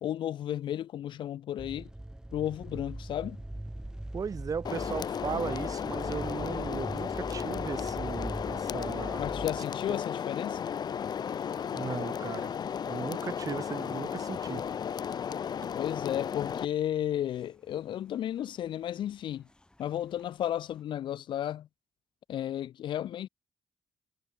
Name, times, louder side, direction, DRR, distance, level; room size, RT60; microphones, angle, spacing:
voice 1, 0.0-1.9 2.3-3.4 8.7-8.8 9.2-10.7 15.7-19.4 19.8-21.7 22.3-23.3, left 11 dB, 80° left, 0.8 m, -33 dB
sound 1, 1.6-9.9, right 1 dB, 10° right, 1.5 m, -41 dB
voice 2, 4.1-9.2 11.7-12.5 12.9-14.6, right 6 dB, 45° right, 1.7 m, -37 dB
sound 2, 4.6-16.7, left 8 dB, 55° left, 1.1 m, -34 dB
sound 3, 10.6-20.8, left 1 dB, 10° left, 7.5 m, -66 dB
cardioid pair, 95°, 8 cm